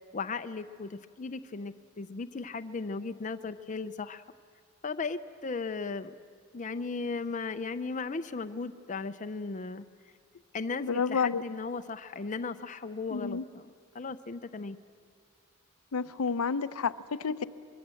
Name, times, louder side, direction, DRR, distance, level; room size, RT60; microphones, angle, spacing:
voice 1, 0.1-4.2 4.8-6.1 6.5-9.9 10.5-14.8, left 4 dB, 35° left, 9 dB, 0.6 m, -36 dB
voice 2, 10.8-11.4 13.1-13.4 15.9-17.4, left 5 dB, 85° left, 12 dB, 0.7 m, -30 dB
24.5 x 22.0 x 7.7 m, 2.1 s
head